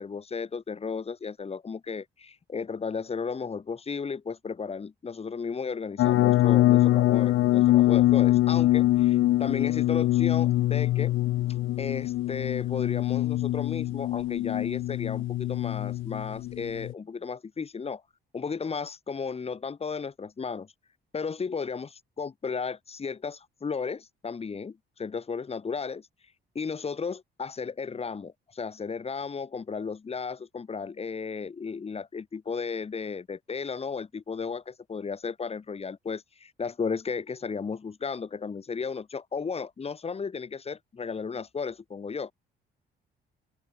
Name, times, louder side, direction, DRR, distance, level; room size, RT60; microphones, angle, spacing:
voice 1, 0.0-11.1 11.8-18.0 18.3-20.7 21.1-21.9 22.2-26.1 26.5-42.3, left 5 dB, 30° left, 1.3 m, -34 dB
sound 1, 6.0-16.9, left 15 dB, 85° left, 1.0 m, -24 dB
open air
cardioid pair, 90°, 20 cm